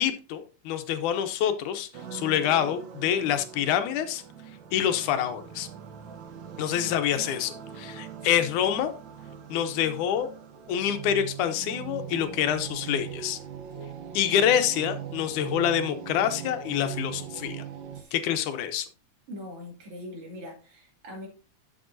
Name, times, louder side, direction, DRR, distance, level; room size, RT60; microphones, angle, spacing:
voice 1, 0.0-4.2 4.7-5.7 6.6-8.9 9.5-10.3 10.7-13.4 14.1-17.6 18.1-18.9, left 10 dB, 80° left, 9 dB, 2.3 m, -26 dB
sound 1, 1.9-18.0, right 8 dB, 85° right, 1.0 m, -41 dB
voice 2, 6.8-7.3 17.9-18.1 19.3-21.3, left 1 dB, 50° right, 0 dB, 3.4 m, -42 dB
11.5 x 7.0 x 2.7 m, 0.35 s
omnidirectional pair, 3.5 m